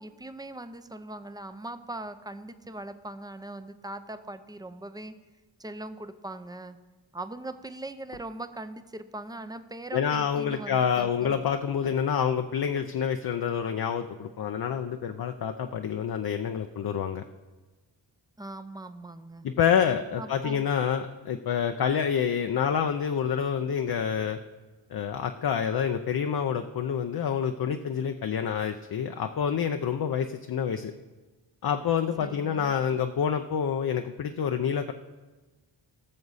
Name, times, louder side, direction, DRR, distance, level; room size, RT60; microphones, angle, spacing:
voice 1, 0.0-5.1 5.6-6.8 7.1-11.4 18.4-19.5 20.2-20.7 32.2-32.7, right 2 dB, 10° right, 11 dB, 0.5 m, -40 dB
voice 2, 9.9-17.2 19.4-24.4 24.9-30.9 31.6-34.9, left 7 dB, 50° left, 6 dB, 0.6 m, -27 dB
17.5 x 6.8 x 4.1 m, 1.2 s
cardioid pair, 75°, 46 cm